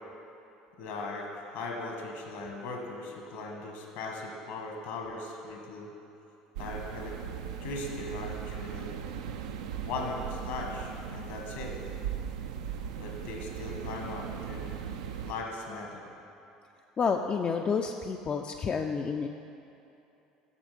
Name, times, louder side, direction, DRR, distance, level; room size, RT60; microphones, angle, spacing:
voice 1, 0.8-5.9 6.6-7.2 7.6-8.9 9.8-11.7 13.0-14.8 15.2-16.0, left 2 dB, 65° left, 0 dB, 1.4 m, -38 dB
sound 1, 6.6-15.3, right 8 dB, 75° right, 0.4 m, -38 dB
voice 2, 17.0-19.3, left 5 dB, 35° left, 4 dB, 0.4 m, -29 dB
7.4 x 6.4 x 5.0 m, 2.9 s
hypercardioid pair, 70°, 3 cm